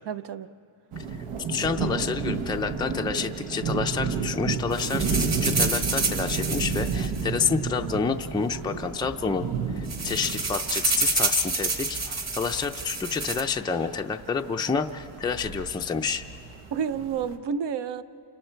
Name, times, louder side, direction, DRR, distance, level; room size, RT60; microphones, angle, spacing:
voice 1, 0.0-0.5 11.1-11.2 16.7-18.0, right 7 dB, 55° right, 12 dB, 0.8 m, -30 dB
sound 1, 0.9-17.4, right 5 dB, 80° right, 1.3 m, -32 dB
voice 2, 1.5-9.4 9.7-16.2, left 5 dB, 10° left, 4 dB, 0.4 m, -29 dB
sound 2, 4.7-7.9 8.7-8.8 9.1-9.3 9.6-13.4, right 3 dB, 30° right, 1.7 m, -29 dB
29.0 x 26.5 x 4.5 m, 2.5 s
wide cardioid pair, 155°, 50 cm